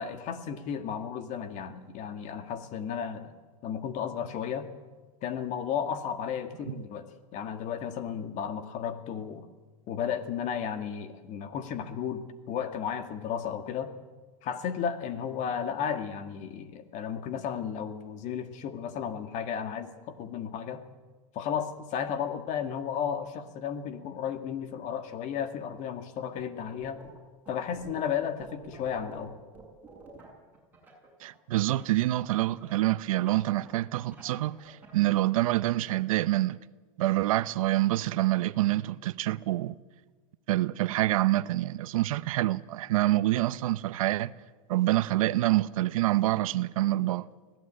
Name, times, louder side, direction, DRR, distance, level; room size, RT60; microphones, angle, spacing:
voice 1, 0.0-3.3 3.6-4.7 5.2-9.5 9.9-13.9 14.4-20.8 21.3-27.0 27.5-29.3, left 8 dB, 45° left, 2.0 m, -34 dB
sound 1, 26.4-27.2 27.4-31.9 32.6-35.3, right 3 dB, 10° right, 7.3 m, -50 dB
voice 2, 31.2-36.6 37.0-39.8 40.5-44.3 44.7-47.3, right 16 dB, 75° right, 0.8 m, -26 dB
25.0 x 16.5 x 8.8 m
supercardioid pair, 120°, 18 cm